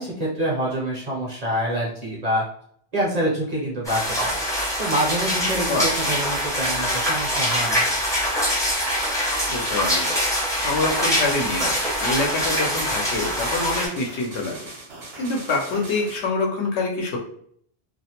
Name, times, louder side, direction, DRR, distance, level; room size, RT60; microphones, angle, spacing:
voice 1, 0.0-2.4 2.9-4.3 4.8-7.9, right 1 dB, 45° right, -5 dB, 0.6 m, -26 dB
sound 1, 3.8-13.9, equal, 5° left, 0.5 m, -24 dB
voice 2, 5.7-6.2 9.5-10.1 10.5-14.7 15.2-17.2, left 3 dB, 75° left, 0 dB, 0.9 m, -26 dB
sound 2, 10.7-16.2, right 2 dB, 65° right, 0.9 m, -40 dB
2.4 x 2.0 x 2.8 m, 0.64 s
omnidirectional pair, 1.2 m